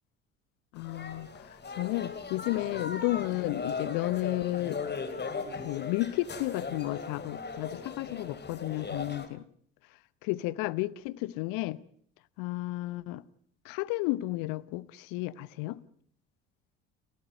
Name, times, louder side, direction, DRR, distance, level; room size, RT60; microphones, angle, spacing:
voice 1, 0.7-4.8 5.6-9.4 10.2-11.8 12.4-13.2 13.6-15.8, left 18 dB, 60° left, 0.9 m, -32 dB
sound 1, 0.8-9.3, left 4 dB, 25° left, 2.8 m, -38 dB
30.0 x 14.0 x 7.7 m
figure-of-eight pair, 55°, 38 cm